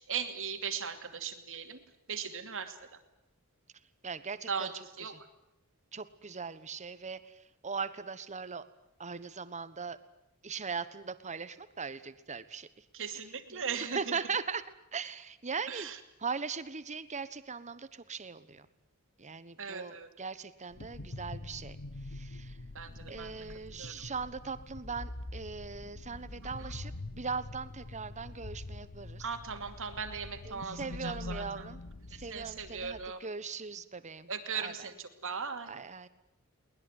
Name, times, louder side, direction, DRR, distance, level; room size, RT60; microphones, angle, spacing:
voice 1, 0.1-1.8 2.1-3.0 4.5-5.2 12.9-14.2 15.7-16.0 19.6-20.1 22.7-23.4 23.7-23.9 26.6-26.7 29.2-31.6 32.1-33.2 34.3-35.8, right 6 dB, 65° right, 7 dB, 2.5 m, -38 dB
voice 2, 4.0-4.7 5.9-8.6 9.0-10.0 10.4-12.8 13.5-13.7 13.9-14.6 14.9-15.9 16.2-18.7 19.2-21.8 22.1-22.6 23.1-29.2 30.4-31.8 32.1-34.7 35.7-36.1, right 5 dB, 30° right, 14 dB, 1.3 m, -39 dB
sound 1, 20.7-33.1, left 2 dB, 55° left, 1.1 m, -45 dB
22.5 x 20.0 x 9.6 m, 0.86 s
head